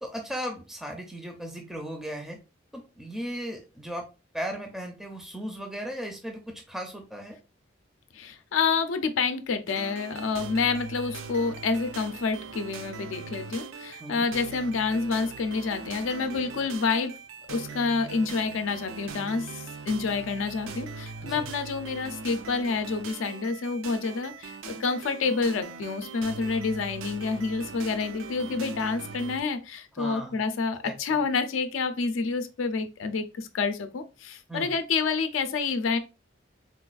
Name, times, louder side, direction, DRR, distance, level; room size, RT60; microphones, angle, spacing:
voice 1, 0.0-2.4 2.7-4.0 4.3-7.4 14.0-14.3 21.2-21.5 30.0-30.4 30.8-31.2 34.5-34.7, equal, ahead, 0.4 m, -36 dB
voice 2, 8.1-17.1 17.5-36.0, left 4 dB, 80° left, 0.4 m, -28 dB
sound 1, 9.7-29.4, right 4 dB, 90° right, 0.5 m, -41 dB
3.9 x 2.3 x 2.3 m
head